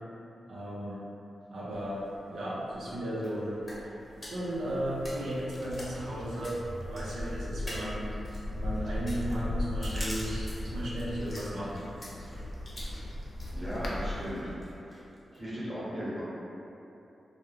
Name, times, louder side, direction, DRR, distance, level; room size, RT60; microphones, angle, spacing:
voice 1, 0.5-1.0 1.5-3.6 4.2-6.6 6.8-8.0 8.5-11.8, equal, 85° right, -7 dB, 0.6 m, -35 dB
sound 1, 1.7-14.7, equal, 40° left, 0.9 m, -46 dB
sound 2, 4.1-14.3, left 1 dB, 65° left, 0.4 m, -37 dB
sound 3, 8.5-15.4, equal, 5° left, 0.6 m, -48 dB
voice 2, 13.5-14.5 15.3-16.2, equal, 25° right, -10 dB, 0.9 m, -36 dB
2.3 x 2.0 x 3.0 m, 2.8 s
cardioid pair, 80°, 0 cm